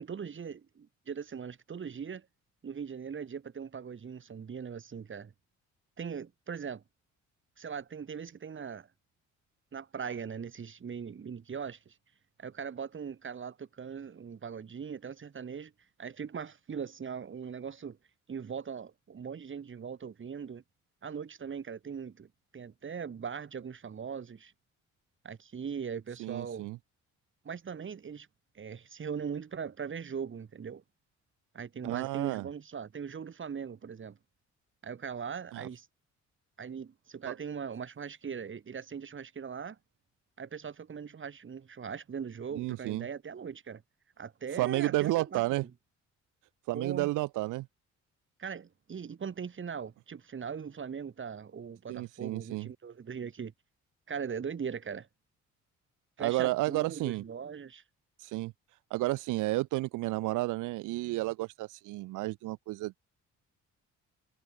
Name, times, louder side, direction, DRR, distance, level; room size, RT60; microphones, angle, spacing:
voice 1, 0.0-2.3 2.6-5.3 6.0-6.8 7.6-8.9 9.7-11.9 12.4-15.7 16.0-18.0 18.3-20.6 21.0-24.5 25.2-26.7 27.4-28.3 28.5-30.8 31.5-34.2 34.8-35.9 36.6-39.8 40.4-43.8 44.2-45.7 46.7-47.1 48.4-53.5 54.1-55.1 56.2-57.8, right 6 dB, 40° right, 2.6 m, -40 dB
voice 2, 26.2-26.8 31.8-32.5 35.5-35.7 37.2-37.3 42.5-43.0 44.5-45.6 46.7-47.7 51.9-52.7 56.2-57.2 58.2-58.5 58.9-63.0, right 19 dB, 85° right, 0.5 m, -31 dB
cardioid pair, 90°, 30 cm